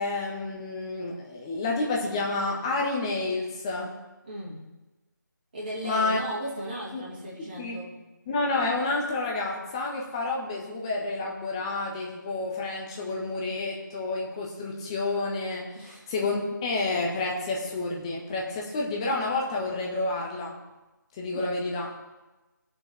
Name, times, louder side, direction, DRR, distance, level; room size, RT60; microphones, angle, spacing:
voice 1, 0.0-3.9 5.8-6.2 6.9-7.0 7.6-7.9 8.3-20.6 21.2-21.9, left 3 dB, 15° left, -1 dB, 1.3 m, -29 dB
voice 2, 4.2-4.6 5.5-8.0 15.7-16.1 21.3-21.6, right 1 dB, 25° right, -6 dB, 2.8 m, -37 dB
20.0 x 6.9 x 3.3 m, 1.1 s
figure-of-eight pair, 155°, 11 cm